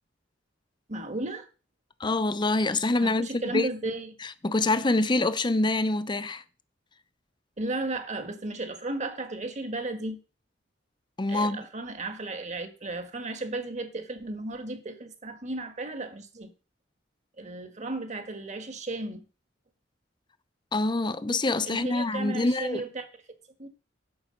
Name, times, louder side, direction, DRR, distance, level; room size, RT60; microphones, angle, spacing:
voice 1, 0.9-1.5 3.0-4.1 7.6-10.2 11.3-16.5 17.4-19.3 21.6-23.1 23.6-23.7, right 2 dB, 40° right, 1.5 m, -34 dB
voice 2, 2.0-3.7 4.2-6.4 11.2-11.7 20.7-22.8, left 2 dB, 25° left, 0.6 m, -26 dB
11.0 x 4.8 x 7.7 m
head